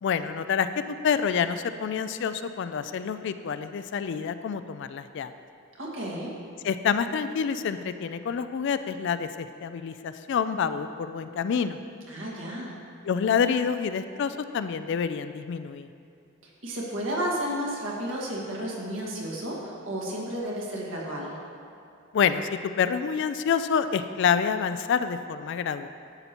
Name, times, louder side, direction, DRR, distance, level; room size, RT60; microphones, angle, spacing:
voice 1, 0.0-0.7 1.0-5.3 6.6-11.8 13.0-15.9 22.1-22.5 22.8-25.9, left 7 dB, 60° left, 11 dB, 0.3 m, -27 dB
voice 2, 5.8-6.3 12.1-12.7 16.4-21.4, equal, 65° right, -3 dB, 1.7 m, -32 dB
12.0 x 6.9 x 2.9 m, 2.7 s
head